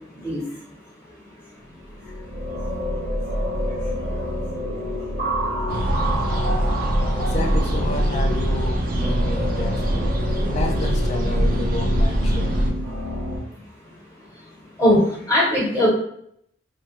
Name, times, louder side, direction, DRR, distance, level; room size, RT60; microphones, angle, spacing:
sound 1, 1.8-13.4, equal, 75° right, 0.9 m, -27 dB
sound 2, 5.7-12.7, right 1 dB, 45° right, 0.4 m, -23 dB
voice 1, 7.2-10.1 10.5-12.7, left 2 dB, 35° left, 3 dB, 0.4 m, -31 dB
voice 2, 14.8-15.9, left 1 dB, 5° right, -10 dB, 0.8 m, -19 dB
2.7 x 2.3 x 3.0 m, 0.71 s
head